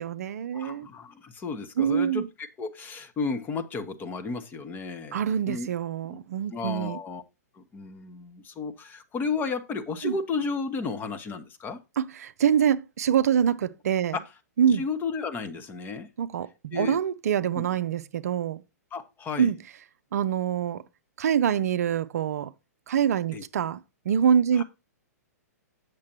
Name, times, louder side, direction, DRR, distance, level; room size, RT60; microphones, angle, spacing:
voice 1, 0.0-0.9 1.8-2.3 5.1-7.0 10.0-10.2 12.0-14.2 14.6-14.8 16.2-18.6 19.4-19.6 20.1-20.8 21.2-22.5 22.9-23.8 24.1-24.6, right 8 dB, 65° right, 0.5 m, -25 dB
voice 2, 0.5-5.7 6.1-6.2 6.5-7.2 7.6-11.8 14.7-16.1 16.7-17.0 17.5-17.7 18.9-19.5 23.3-23.4 24.6-24.7, left 4 dB, 20° left, 1.1 m, -33 dB
8.4 x 6.7 x 3.0 m
hypercardioid pair, 115°, 9 cm